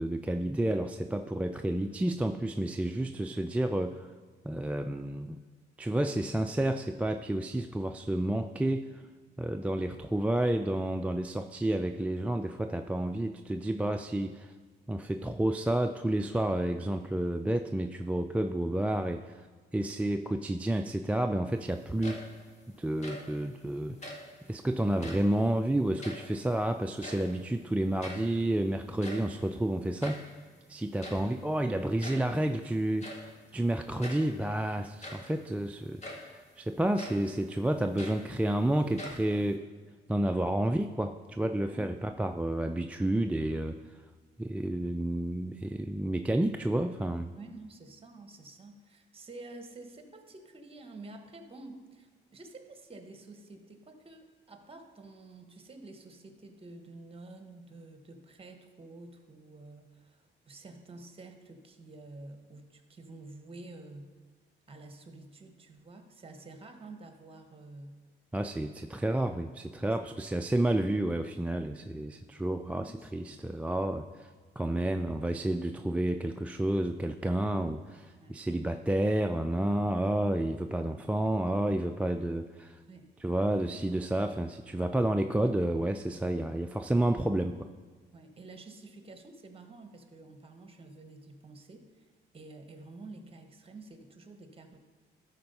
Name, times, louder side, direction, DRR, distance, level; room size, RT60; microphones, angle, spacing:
voice 1, 0.0-4.1 4.4-5.4 5.8-9.0 9.4-14.5 14.9-19.5 19.7-22.2 22.8-24.0 24.5-30.2 30.7-39.6 40.1-43.8 44.4-47.3 68.3-74.3 74.6-82.8 83.2-87.7, right 1 dB, 5° right, 5 dB, 0.3 m, -30 dB
sound 1, 21.8-22.5 22.8-23.4 23.9-24.4 24.9-25.4 25.7-26.6 26.8-27.5 27.7-27.8 28.0-28.4 28.8-30.4 31.0-31.4 32.0-32.4 33.0-33.3 34.0-34.3 34.8-35.4 36.0-36.3 37.0-37.3 37.7-38.6 39.0-39.6, left 1 dB, 35° left, 1.8 m, -44 dB
voice 2, 47.4-64.1 64.7-68.0 69.8-70.1 72.6-73.5 78.2-78.4 82.9-83.1 83.7-83.9 88.1-92.1 92.3-94.8, right 2 dB, 30° right, 7 dB, 1.2 m, -49 dB
12.5 x 4.3 x 5.4 m, 1.5 s
cardioid pair, 90°, 20 cm